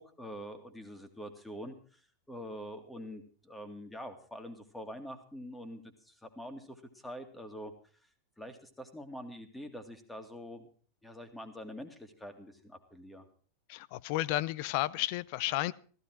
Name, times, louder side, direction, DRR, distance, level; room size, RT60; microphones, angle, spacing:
voice 1, 0.0-2.0 2.3-7.7 8.4-10.7 11.0-13.3, equal, 5° left, 2.3 m, -45 dB
voice 2, 13.7-15.7, left 17 dB, 45° left, 0.6 m, -32 dB
15.0 x 15.0 x 4.7 m
figure-of-eight pair, 90°, 0 cm